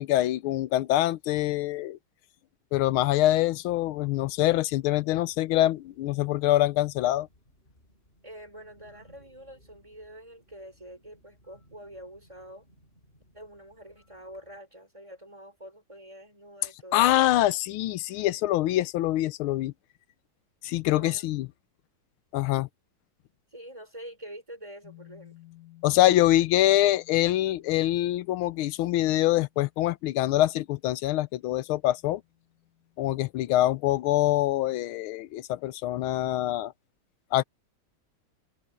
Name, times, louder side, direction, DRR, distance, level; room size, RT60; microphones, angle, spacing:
voice 1, 0.0-2.0 2.7-7.3 16.9-19.7 20.6-21.5 22.3-22.7 25.8-32.2 33.0-36.7 37.3-37.4, left 15 dB, 85° left, 1.5 m, -24 dB
sound 1, 4.3-14.6, equal, 25° left, 6.4 m, -62 dB
voice 2, 8.2-12.7 13.3-17.1 20.9-21.3 23.5-25.4, equal, 15° right, 6.1 m, -46 dB
sound 2, 24.8-34.3, left 16 dB, 45° left, 3.1 m, -57 dB
omnidirectional pair, 2.2 m